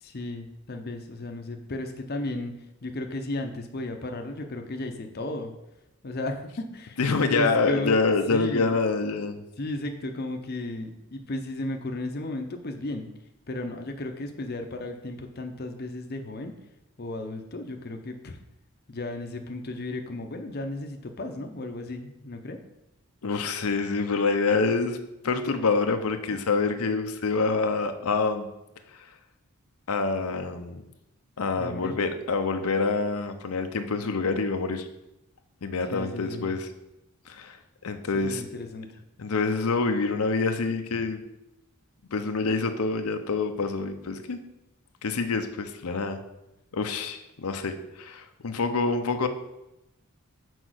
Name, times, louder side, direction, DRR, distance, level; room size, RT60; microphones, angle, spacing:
voice 1, 0.0-2.5 2.8-5.5 6.0-8.0 8.3-8.8 9.6-13.1 13.5-16.5 17.0-18.4 18.9-22.6 31.6-32.0 35.9-36.5 38.1-38.9 40.9-41.1, left 2 dB, 45° left, 4 dB, 0.6 m, -34 dB
voice 2, 7.0-9.4 23.2-25.0 25.2-28.5 28.9-29.1 29.9-30.8 31.4-34.9 35.6-36.7 37.3-37.6 37.8-38.4 39.2-41.2 42.1-44.4 45.0-46.2 46.7-49.3, left 4 dB, 85° left, 7 dB, 0.6 m, -26 dB
6.2 x 4.5 x 6.3 m, 0.90 s
head